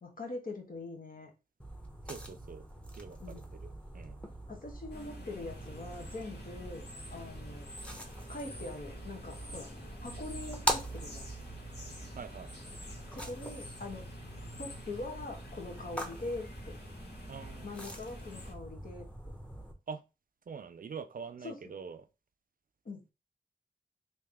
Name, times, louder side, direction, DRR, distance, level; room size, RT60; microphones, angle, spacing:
voice 1, 0.0-1.3 3.2-3.4 4.5-6.9 7.1-7.7 8.3-9.7 10.0-11.3 13.1-14.1 14.6-16.8 17.6-19.1 21.4-21.6 22.8-23.0, left 2 dB, 55° left, 1.2 m, -43 dB
sound 1, 1.6-19.7, right 1 dB, 5° left, 0.9 m, -43 dB
voice 2, 2.1-2.6 3.0-4.2 12.1-12.5 17.3-17.9 19.9-20.0 20.5-22.1, right 6 dB, 60° right, 0.4 m, -45 dB
sound 2, 4.9-18.5, left 1 dB, 85° left, 1.3 m, -49 dB
3.3 x 2.7 x 3.4 m
cardioid pair, 55°, 17 cm